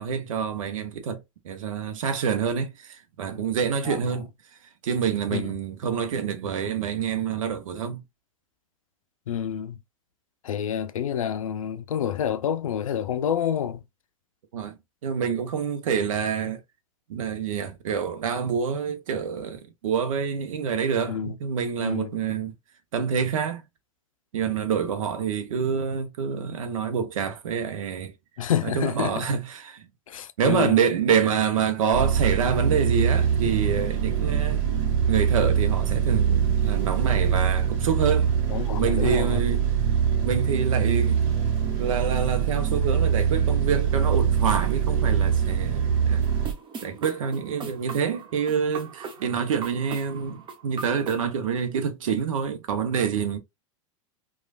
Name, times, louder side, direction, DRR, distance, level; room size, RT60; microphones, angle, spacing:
voice 1, 0.0-4.3 4.8-8.0 14.5-16.6 17.1-22.5 22.9-23.6 24.3-28.1 28.6-29.9 30.4-38.4 38.8-39.7 40.2-41.2 41.8-46.3 46.8-53.4, right 7 dB, 75° right, 0.7 m, -27 dB
voice 2, 9.3-9.8 10.4-13.8 21.1-21.3 21.8-22.1 28.4-29.3 30.1-30.8 38.5-39.4, left 9 dB, 85° left, 0.4 m, -28 dB
sound 1, 31.9-46.5, right 8 dB, 50° right, 1.1 m, -23 dB
sound 2, 46.2-51.3, right 5 dB, 30° right, 0.7 m, -40 dB
3.1 x 2.3 x 2.3 m
hypercardioid pair, 100°, 17 cm